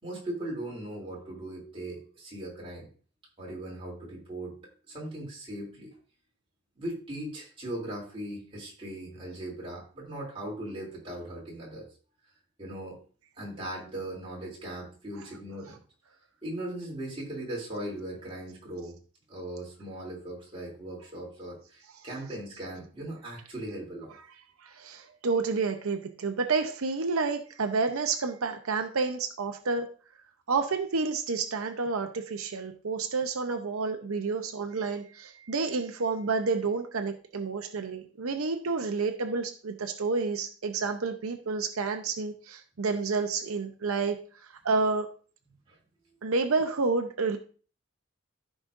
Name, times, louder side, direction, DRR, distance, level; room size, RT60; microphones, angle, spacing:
voice 1, 0.0-2.9 3.4-4.6 4.9-6.0 6.8-11.9 12.6-13.0 13.4-15.8 16.4-18.9 19.3-24.2 45.7-45.8, right 1 dB, 25° right, -4 dB, 3.0 m, -39 dB
voice 2, 24.6-29.9 30.5-44.2 44.5-45.1 46.2-47.4, right 4 dB, 85° right, 6 dB, 0.7 m, -29 dB
14.5 x 5.1 x 2.6 m, 0.39 s
head